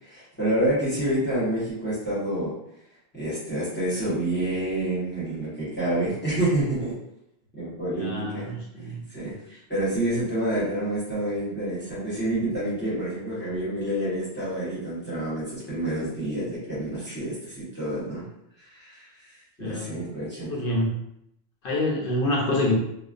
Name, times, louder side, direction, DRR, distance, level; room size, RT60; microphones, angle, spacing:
voice 1, 0.0-2.5 3.1-6.9 7.5-8.5 9.1-18.3 18.6-20.6, right 1 dB, 10° left, -10 dB, 1.0 m, -28 dB
voice 2, 8.0-9.0 19.6-20.0 20.4-21.0 21.6-22.8, left 1 dB, 65° left, -3 dB, 0.8 m, -26 dB
2.4 x 2.2 x 2.5 m, 0.78 s
omnidirectional pair, 1.0 m